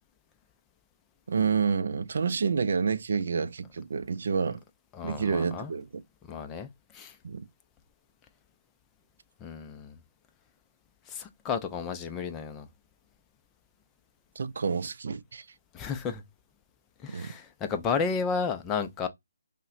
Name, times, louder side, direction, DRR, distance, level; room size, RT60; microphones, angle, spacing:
voice 1, 1.3-4.6 5.0-6.0 7.2-7.4 14.4-15.4 17.1-17.3, right 5 dB, 60° right, 0.4 m, -29 dB
voice 2, 4.9-5.7 6.3-7.2 9.4-9.9 11.1-12.7 15.7-16.2 17.0-19.1, left 5 dB, 15° left, 0.5 m, -32 dB
5.4 x 2.1 x 2.4 m
hypercardioid pair, 165°, 0 cm